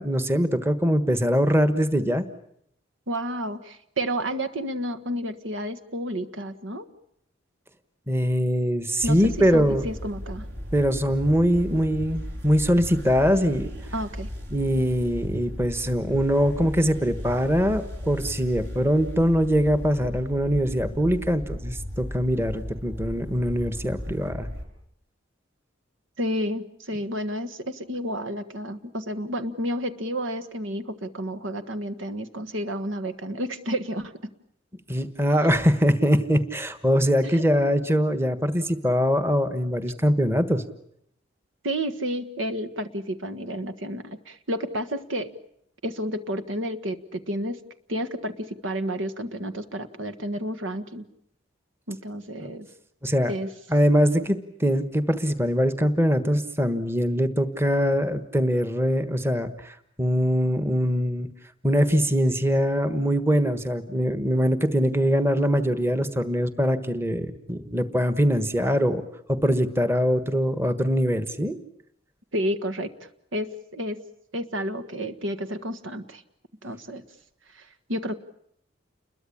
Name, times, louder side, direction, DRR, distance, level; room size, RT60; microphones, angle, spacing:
voice 1, 0.0-2.2 8.1-9.9 10.7-13.7 14.5-24.5 34.9-40.6 52.4-52.5 53.0-53.3 53.7-61.3 61.6-69.0 69.3-71.6, equal, 10° right, 10 dB, 1.4 m, -23 dB
voice 2, 3.1-6.9 9.0-10.5 13.9-14.3 26.2-34.1 37.3-37.4 41.6-45.3 45.8-47.6 47.9-51.1 51.9-52.7 53.3-53.5 72.3-72.9 73.3-74.0 74.3-76.2 76.6-77.0 77.5-78.2, equal, 80° right, 11 dB, 1.6 m, -31 dB
sound 1, 9.0-24.7, equal, 60° right, 6.5 m, -36 dB
29.5 x 22.0 x 8.7 m, 0.73 s
head